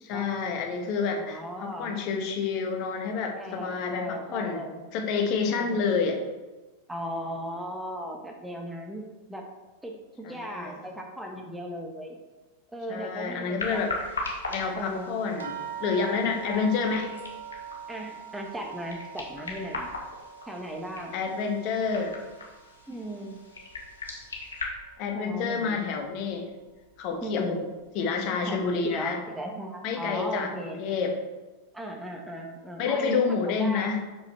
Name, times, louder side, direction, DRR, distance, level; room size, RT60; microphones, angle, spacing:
voice 1, 0.0-4.6 4.9-6.2 10.2-10.8 12.9-13.9 14.5-15.5 15.8-17.1 21.1-22.2 25.0-26.5 27.0-27.6 27.9-29.2 29.8-31.1 32.8-34.0, left 5 dB, 40° left, 3 dB, 1.2 m, -28 dB
voice 2, 1.1-1.9 3.4-4.8 5.5-5.9 6.9-9.4 9.8-12.2 12.7-14.1 14.7-15.2 17.9-19.9 20.5-21.1 22.9-23.4 25.1-25.9 27.1-27.7 28.5-30.8 31.7-33.9, equal, 5° right, 1 dB, 1.0 m, -37 dB
sound 1, 13.6-24.7, left 3 dB, 70° left, 1.4 m, -39 dB
sound 2, 15.4-24.2 24.5-25.4 26.2-26.3 26.7-26.8, right 8 dB, 65° right, 0.8 m, -43 dB
6.6 x 5.9 x 4.4 m, 1.2 s
figure-of-eight pair, 90°, 0 cm